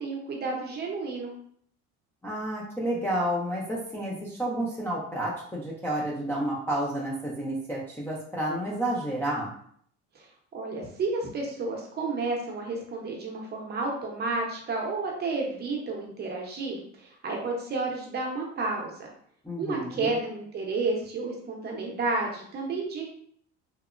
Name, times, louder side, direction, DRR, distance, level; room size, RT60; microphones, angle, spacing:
voice 1, 0.0-1.3 10.1-10.3 10.5-19.1 19.6-23.0, right 3 dB, 35° right, 0 dB, 0.7 m, -31 dB
voice 2, 2.2-9.5 19.4-20.2, right 1 dB, 10° left, -7 dB, 0.4 m, -30 dB
2.9 x 2.0 x 2.4 m, 0.62 s
cardioid pair, 130°, 30 cm